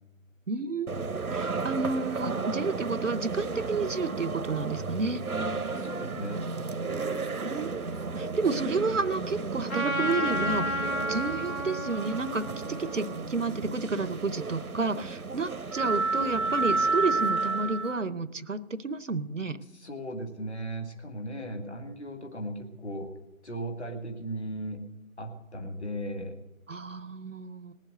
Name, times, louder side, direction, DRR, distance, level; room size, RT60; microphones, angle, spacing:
voice 1, 0.5-5.2 7.4-19.6 26.7-27.7, right 3 dB, 60° right, 14 dB, 0.7 m, -31 dB
sound 1, 0.9-18.0, right 3 dB, 85° right, 1.0 m, -32 dB
voice 2, 5.7-6.4 19.8-23.1 23.4-24.8 25.2-26.3, right 1 dB, 50° left, 5 dB, 1.8 m, -36 dB
Trumpet, 9.7-14.3, equal, 75° left, 3.2 m, -33 dB
19.0 x 7.5 x 7.7 m, 1.0 s
figure-of-eight pair, 170°, 43 cm